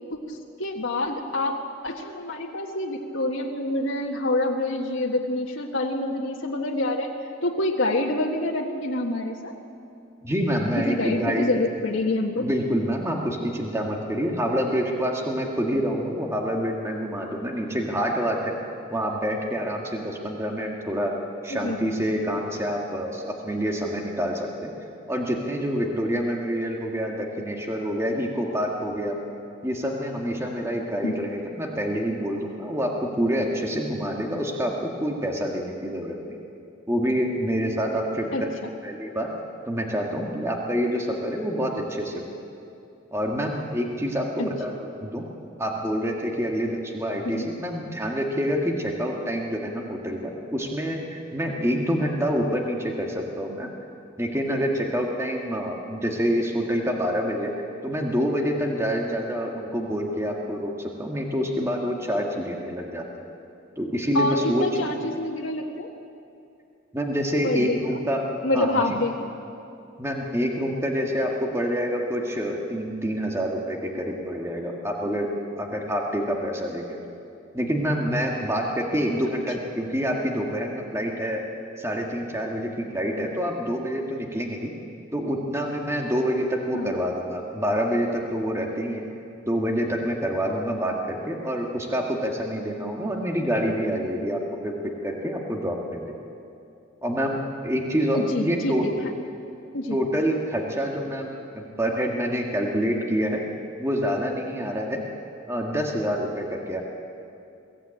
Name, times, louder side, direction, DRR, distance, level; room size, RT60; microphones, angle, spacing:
voice 1, 0.1-7.1 7.4-9.5 10.8-12.5 21.5-21.8 31.0-31.2 38.3-38.4 44.4-44.5 47.2-47.5 64.1-65.9 67.4-67.8 68.4-69.3 86.7-86.9 98.1-99.1 99.7-100.0, left 2 dB, 85° left, 0 dB, 1.6 m, -27 dB
voice 2, 10.2-11.5 12.4-18.6 18.9-21.1 21.4-24.7 25.1-29.2 29.6-36.4 36.9-38.5 38.8-39.3 39.7-42.2 43.1-45.3 45.6-53.7 54.2-57.5 57.8-63.2 63.8-64.6 66.9-68.3 68.5-68.7 70.0-75.3 75.6-77.0 77.5-81.4 81.8-84.7 85.1-89.1 89.5-94.7 95.0-96.2 97.0-97.4 97.6-98.8 99.9-103.4 103.8-105.0 105.5-106.8, equal, 15° right, 0 dB, 1.7 m, -27 dB
22.5 x 15.0 x 8.9 m, 2.6 s
head